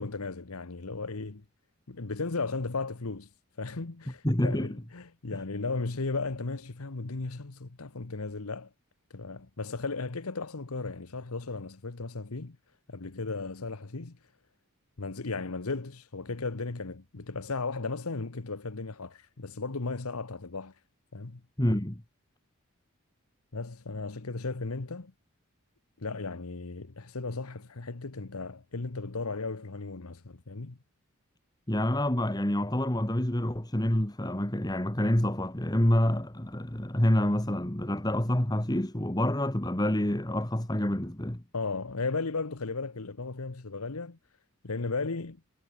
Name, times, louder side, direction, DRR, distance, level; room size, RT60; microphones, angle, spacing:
voice 1, 0.0-1.4 1.9-3.3 3.6-8.7 9.1-12.6 12.9-14.2 15.0-20.7 21.1-21.4 23.5-25.1 26.0-30.8 41.5-44.2 44.6-45.4, left 3 dB, 85° left, 1.2 m, -35 dB
voice 2, 4.2-4.7 21.6-22.0 31.7-41.4, left 1 dB, 20° left, 1.5 m, -27 dB
head